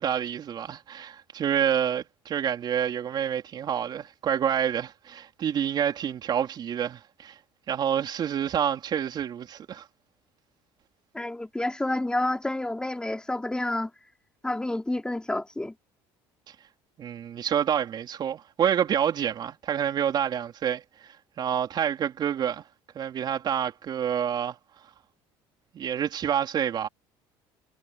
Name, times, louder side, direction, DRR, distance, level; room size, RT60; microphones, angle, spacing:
voice 1, 0.0-7.3 7.7-9.8 17.0-21.1 21.4-22.6 22.9-24.6 25.7-26.9, right 9 dB, 45° right, 4.2 m, -28 dB
voice 2, 11.1-13.9 14.4-15.7, left 1 dB, 10° left, 4.6 m, -29 dB
cardioid pair, 110°, 10 cm